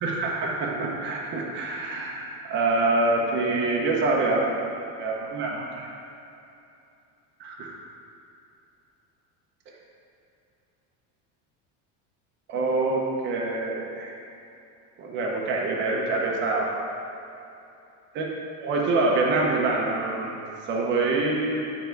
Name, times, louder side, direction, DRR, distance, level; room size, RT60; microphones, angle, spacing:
voice 1, 0.0-4.5 5.0-6.1 7.4-7.7 12.5-14.1 15.0-16.7 18.1-18.3 18.6-20.4 20.7-21.6, right 3 dB, 30° right, -2 dB, 0.9 m, -25 dB
9.1 x 4.0 x 4.6 m, 2.7 s
cardioid pair, 170°, 36 cm